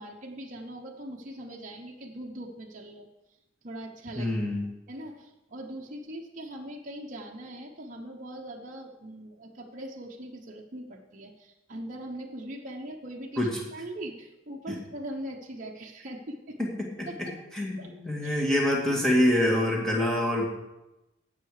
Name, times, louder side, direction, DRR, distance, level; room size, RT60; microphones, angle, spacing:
voice 1, 0.0-3.1 3.6-4.4 4.9-16.6 17.1-17.3 17.8-17.9 18.2-18.5, right 1 dB, 40° right, -1 dB, 0.9 m, -41 dB
voice 2, 4.2-4.7 13.4-13.6 14.7-14.8 16.6-17.1 17.5-20.4, left 1 dB, 5° left, -2 dB, 1.8 m, -26 dB
16.0 x 5.7 x 4.9 m, 0.99 s
head